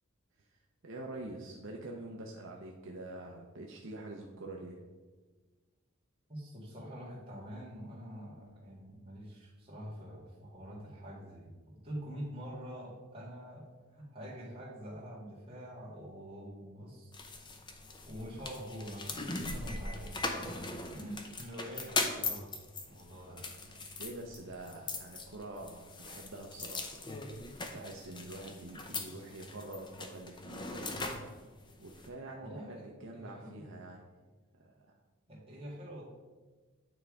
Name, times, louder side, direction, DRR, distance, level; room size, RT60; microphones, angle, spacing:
voice 1, 0.4-4.8 23.3-27.0 27.7-31.0 31.8-34.1 34.6-35.0, right 2 dB, 60° right, 0 dB, 0.6 m, -46 dB
voice 2, 6.3-13.7 13.9-17.1 18.0-20.5 20.9-22.5 22.9-23.4 32.4-33.7 35.3-36.0, equal, 25° right, -6 dB, 2.0 m, -45 dB
sound 1, 17.1-32.1, left 3 dB, 20° left, 0.6 m, -40 dB
9.0 x 3.5 x 4.8 m, 1.3 s
head